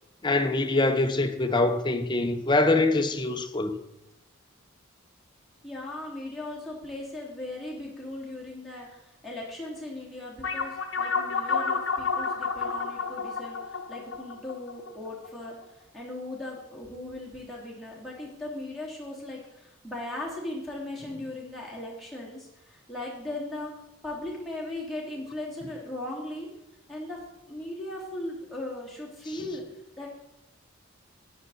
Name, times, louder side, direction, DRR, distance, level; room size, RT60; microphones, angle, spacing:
voice 1, 0.2-3.7, left 2 dB, 20° left, 0.7 m, -24 dB
voice 2, 5.6-15.6 15.9-23.7 24.0-26.5 26.9-27.2 27.5-29.6 30.0-30.1, left 1 dB, ahead, 3.0 m, -38 dB
sound 1, 10.4-15.3, left 5 dB, 65° left, 0.8 m, -30 dB
11.5 x 9.7 x 4.2 m
head